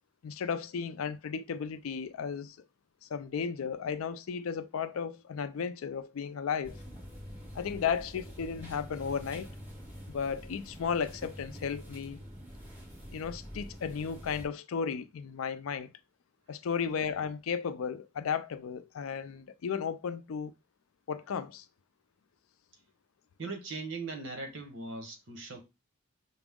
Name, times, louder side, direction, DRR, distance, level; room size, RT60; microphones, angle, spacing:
voice 1, 0.2-2.6 3.0-6.8 7.5-9.5 10.1-12.2 13.1-15.9 16.5-20.5 21.1-21.7, left 6 dB, 75° left, 0.4 m, -34 dB
sound 1, 6.6-14.4, equal, 10° right, 1.1 m, -46 dB
voice 2, 23.4-25.6, right 3 dB, 60° right, 1.0 m, -39 dB
5.9 x 2.0 x 3.5 m
head